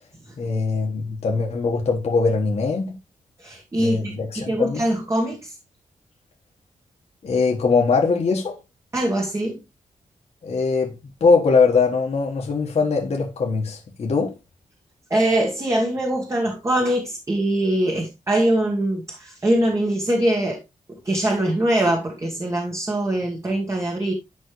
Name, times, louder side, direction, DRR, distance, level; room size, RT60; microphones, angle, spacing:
voice 1, 0.4-3.0 3.8-4.8 7.2-8.6 10.4-10.9 11.2-14.3, left 4 dB, 55° left, 1.5 m, -21 dB
voice 2, 3.4-5.6 8.9-9.6 15.1-20.6 20.9-24.1, right 1 dB, 20° right, 1.5 m, -23 dB
11.0 x 5.4 x 3.2 m
wide cardioid pair, 165°, 13 cm